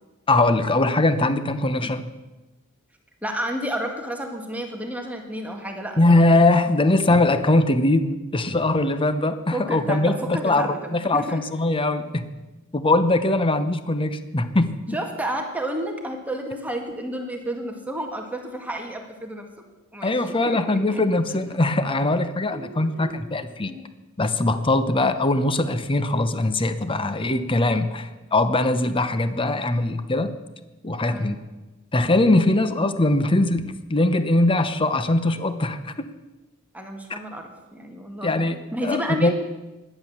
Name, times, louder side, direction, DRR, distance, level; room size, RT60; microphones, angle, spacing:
voice 1, 0.3-2.1 6.0-12.3 12.7-15.0 20.0-23.7 24.2-30.4 30.8-31.3 31.9-35.9 37.1-37.2 38.2-39.3, left 2 dB, 25° left, 11 dB, 0.9 m, -21 dB
voice 2, 3.2-6.3 9.5-11.4 14.9-19.5 19.9-20.1 20.5-21.4 22.5-23.3 23.6-23.9 31.1-31.3 36.7-39.3, right 1 dB, 5° right, 2 dB, 1.7 m, -31 dB
16.5 x 11.0 x 7.2 m, 1.1 s
head